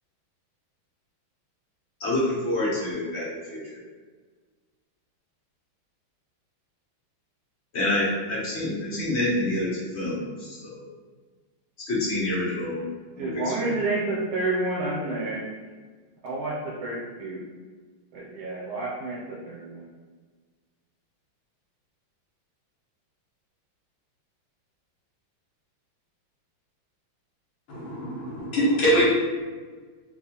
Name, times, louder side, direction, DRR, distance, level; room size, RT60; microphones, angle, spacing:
voice 1, 2.0-3.8 7.7-10.9 11.9-12.9 13.2-13.8, left 1 dB, 50° left, -6 dB, 0.8 m, -28 dB
voice 2, 13.2-15.4 16.2-16.5 16.8-17.4 18.1-19.9, right 2 dB, 90° right, -6 dB, 1.7 m, -29 dB
voice 3, 27.7-29.0, equal, 85° left, -7 dB, 1.9 m, -23 dB
4.1 x 2.5 x 2.8 m, 1.4 s
omnidirectional pair, 2.2 m